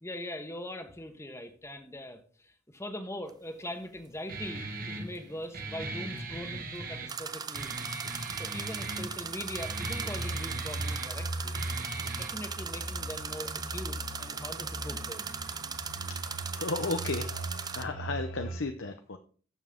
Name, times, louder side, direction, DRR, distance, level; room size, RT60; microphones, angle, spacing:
voice 1, 0.0-7.9 8.4-11.6 12.2-15.3, left 1 dB, 15° left, 6 dB, 1.3 m, -41 dB
sound 1, 3.3-3.4 7.1-17.8, right 6 dB, 20° right, 0.5 m, -38 dB
Guitar, 4.3-12.3, right 2 dB, 45° right, 1.6 m, -39 dB
sound 2, 8.7-18.6, right 1 dB, 85° left, 3.5 m, -39 dB
voice 2, 15.8-19.2, left 3 dB, 60° left, 7 dB, 0.7 m, -35 dB
12.5 x 7.1 x 3.7 m, 0.42 s
head